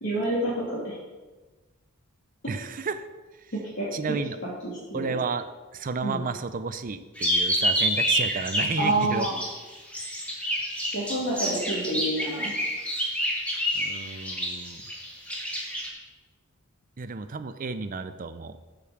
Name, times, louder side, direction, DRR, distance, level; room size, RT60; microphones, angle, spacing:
voice 1, 0.0-0.9 3.7-3.9 4.9-5.2 6.0-6.2 8.8-9.4 10.9-12.5, right 1 dB, 60° left, -9 dB, 2.8 m, -28 dB
voice 2, 2.5-3.0 3.9-4.4 4.9-5.5 5.7-9.3 13.7-14.8 17.0-18.6, right 4 dB, 40° right, 11 dB, 0.5 m, -32 dB
sound 1, 7.2-9.5 9.9-15.9, equal, 5° left, 1.8 m, -28 dB
8.6 x 5.2 x 7.1 m, 1.2 s
head